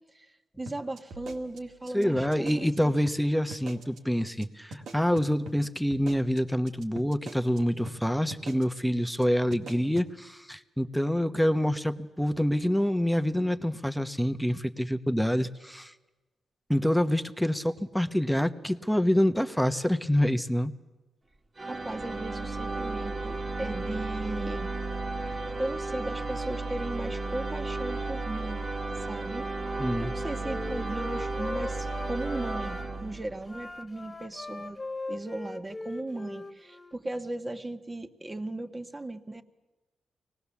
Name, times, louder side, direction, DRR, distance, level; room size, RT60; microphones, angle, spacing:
voice 1, 0.1-2.9 21.7-24.7 25.2-28.6 29.1-29.7 30.0-34.8 35.1-39.4, right 2 dB, 20° right, 8 dB, 1.5 m, -37 dB
sound 1, 0.7-2.8 3.1-3.2 3.5-4.0 4.3-4.4 4.7-7.6 7.9-8.0 8.3-8.8 9.1-9.2 9.5-10.1, right 2 dB, 80° right, 2.1 m, -43 dB
voice 2, 1.9-15.9 16.7-20.7 29.8-30.1, equal, ahead, 9 dB, 1.1 m, -26 dB
sound 2, 21.6-33.5, right 3 dB, 35° right, 1.8 m, -33 dB
Wind instrument woodwind instrument, 29.6-32.9 33.4-37.0, left 2 dB, 20° left, 1.7 m, -40 dB
24.0 x 19.0 x 7.2 m, 1.1 s
cardioid pair, 80°, 0 cm